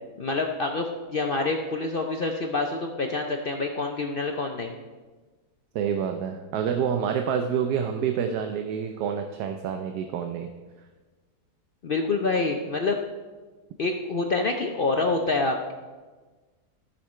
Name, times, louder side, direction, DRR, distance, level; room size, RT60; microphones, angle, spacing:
voice 1, 0.2-4.7 11.8-13.0 13.8-15.7, left 3 dB, 60° left, 3 dB, 0.5 m, -27 dB
voice 2, 5.7-10.5, right 7 dB, 80° right, 6 dB, 1.2 m, -27 dB
15.0 x 5.8 x 4.3 m, 1.3 s
omnidirectional pair, 1.7 m